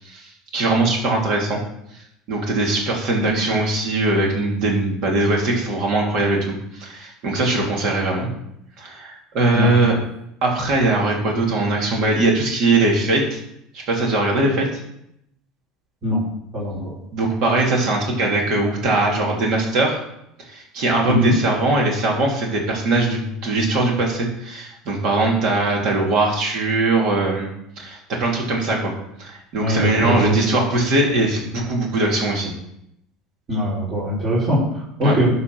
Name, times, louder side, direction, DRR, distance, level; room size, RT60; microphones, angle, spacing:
voice 1, 0.0-1.6 2.3-8.3 8.8-10.0 10.4-13.4 13.7-14.7 17.1-20.0 20.5-27.5 27.8-28.9 29.2-32.5 35.0-35.1, right 2 dB, 60° right, 0 dB, 2.9 m, -21 dB
voice 2, 16.5-16.9 21.0-21.3 29.6-30.5 33.5-35.3, equal, 40° right, -9 dB, 4.2 m, -21 dB
11.5 x 4.3 x 6.0 m, 0.77 s
hypercardioid pair, 90°, 0 cm